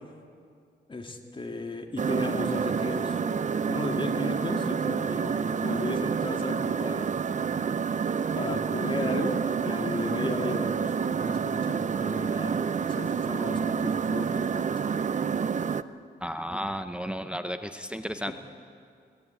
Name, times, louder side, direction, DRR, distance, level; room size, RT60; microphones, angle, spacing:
voice 1, 0.9-3.2 3.6-7.1 8.3-15.0 16.5-16.6 18.3-18.4, left 2 dB, 25° left, 4 dB, 2.1 m, -35 dB
sound 1, 2.0-15.8, right 6 dB, 40° right, 0.6 m, -28 dB
voice 2, 16.2-18.3, equal, 5° right, 8 dB, 0.7 m, -33 dB
22.5 x 17.0 x 9.0 m, 2.3 s
wide cardioid pair, 115°, 19 cm